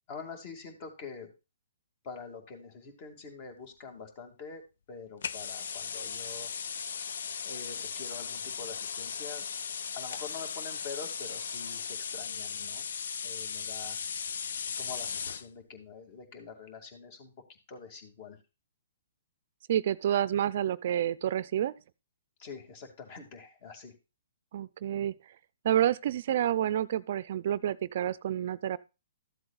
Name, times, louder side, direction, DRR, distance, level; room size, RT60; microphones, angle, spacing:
voice 1, 0.1-1.3 2.0-4.6 4.9-6.5 7.4-9.5 9.9-12.9 13.2-14.0 14.8-17.3 17.7-18.4 22.4-23.9, left 5 dB, 40° left, 2.5 m, -45 dB
sound 1, 5.2-15.5, left 7 dB, 70° left, 0.4 m, -37 dB
voice 2, 19.7-21.7 24.5-25.1 25.6-28.8, right 11 dB, 55° right, 0.5 m, -29 dB
14.0 x 7.8 x 2.4 m
hypercardioid pair, 135°, 0 cm